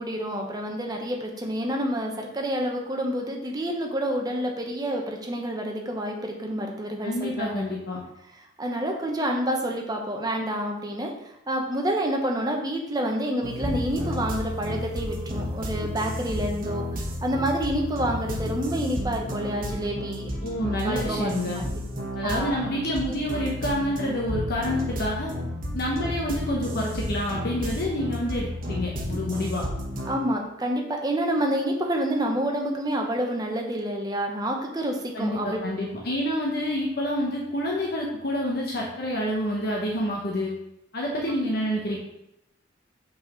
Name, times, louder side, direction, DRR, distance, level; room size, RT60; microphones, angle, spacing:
voice 1, 0.0-7.6 8.6-11.1 11.5-16.8 17.2-20.3 20.8-21.6 22.2-22.6 30.1-35.6, right 1 dB, 20° right, 1 dB, 0.9 m, -28 dB
voice 2, 7.0-8.0 20.4-21.6 22.1-25.3 25.7-29.7 35.1-40.5 40.9-42.0, left 1 dB, 50° left, -3 dB, 1.0 m, -28 dB
sound 1, 13.4-30.2, equal, 45° right, 1.2 m, -32 dB
5.9 x 4.1 x 5.0 m, 0.83 s
head